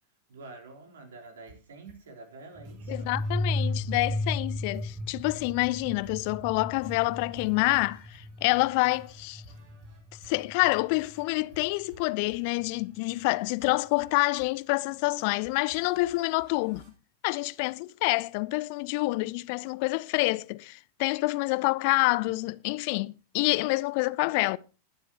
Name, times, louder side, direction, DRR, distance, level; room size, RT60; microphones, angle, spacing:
voice 1, 0.3-3.2 22.2-22.4, right 3 dB, 65° right, 3.7 m, -47 dB
sound 1, 1.2-16.9, right 1 dB, 45° right, 7.1 m, -57 dB
sound 2, 2.6-11.0, left 1 dB, 10° right, 1.2 m, -34 dB
voice 2, 2.9-9.4 10.2-16.9 17.2-24.6, left 24 dB, 45° left, 0.5 m, -27 dB
21.0 x 7.8 x 2.9 m
figure-of-eight pair, 90°, 0 cm